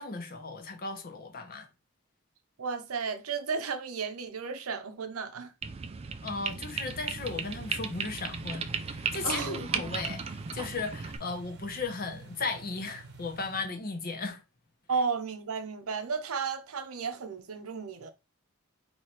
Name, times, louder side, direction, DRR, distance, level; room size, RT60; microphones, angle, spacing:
voice 1, 0.0-1.7 6.2-14.4, left 3 dB, 45° left, 0.9 m, -36 dB
voice 2, 2.6-5.5 9.2-9.8 14.9-18.1, right 5 dB, 85° right, 0.7 m, -33 dB
sound 1, 5.6-11.2, right 6 dB, 30° right, 0.3 m, -36 dB
sound 2, 6.6-13.7, right 4 dB, 55° right, 0.8 m, -50 dB
3.2 x 2.9 x 4.3 m
head